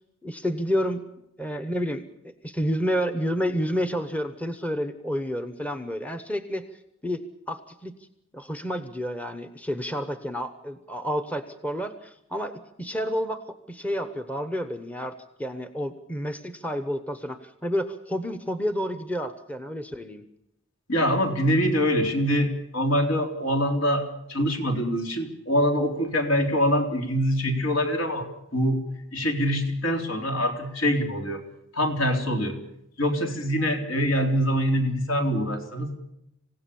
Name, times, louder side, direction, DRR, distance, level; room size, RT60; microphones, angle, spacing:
voice 1, 0.2-1.1 1.4-2.0 2.4-6.7 7.0-8.0 8.3-20.2, equal, 5° left, 9 dB, 1.0 m, -30 dB
voice 2, 20.9-28.8 29.1-31.4 31.7-32.6 33.0-36.0, equal, 65° left, 3 dB, 3.9 m, -24 dB
27.0 x 16.5 x 7.1 m, 0.81 s
head